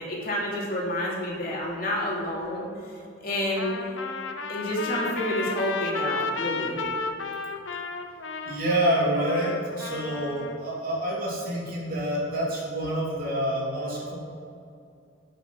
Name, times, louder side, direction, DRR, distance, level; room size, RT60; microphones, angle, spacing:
voice 1, 0.0-2.7 3.2-3.7 4.5-6.8, left 1 dB, 50° left, -5 dB, 3.1 m, -29 dB
Trumpet, 3.6-10.6, left 4 dB, 90° left, 1.0 m, -33 dB
voice 2, 8.4-14.2, right 1 dB, 50° right, -4 dB, 3.2 m, -27 dB
8.7 x 8.1 x 7.5 m, 2.5 s
head